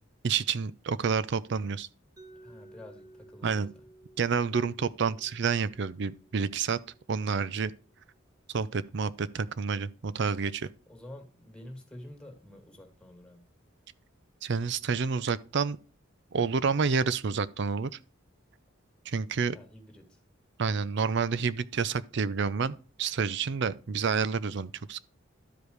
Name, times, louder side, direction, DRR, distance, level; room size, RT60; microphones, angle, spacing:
voice 1, 0.2-1.9 3.4-3.7 4.2-6.8 7.1-7.7 8.5-10.7 14.4-15.8 16.3-17.9 19.1-19.5 20.6-25.0, right 5 dB, 60° right, 0.5 m, -29 dB
Mallet percussion, 2.2-8.0, right 2 dB, 20° right, 1.8 m, -56 dB
voice 2, 2.4-3.9 10.9-13.5 19.5-20.2, left 1 dB, 5° left, 2.1 m, -49 dB
12.5 x 5.1 x 3.1 m
head